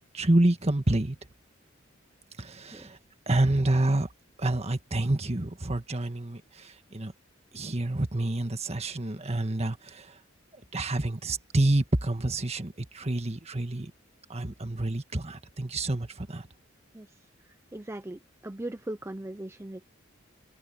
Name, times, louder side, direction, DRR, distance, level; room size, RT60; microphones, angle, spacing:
voice 1, 0.1-1.2 2.4-3.0 3.3-4.1 4.4-7.1 7.5-10.1 10.7-13.9 14.3-16.5, right 1 dB, 30° right, 1.6 m, -28 dB
voice 2, 17.7-19.8, right 1 dB, 15° right, 0.6 m, -38 dB
head